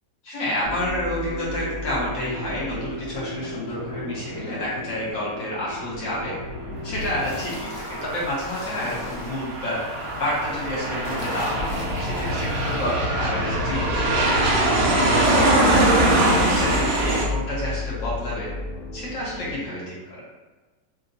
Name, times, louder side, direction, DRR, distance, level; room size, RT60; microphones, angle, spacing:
voice 1, 0.2-6.3 6.8-9.8 10.2-11.7 12.0-18.6 18.9-20.2, left 1 dB, 80° left, -6 dB, 2.1 m, -30 dB
sound 1, 0.6-19.6, left 1 dB, 55° left, 1.0 m, -33 dB
Aircraft, 7.0-17.3, right 1 dB, 65° right, 1.4 m, -23 dB
5.9 x 2.8 x 2.6 m, 1.3 s
omnidirectional pair, 1.9 m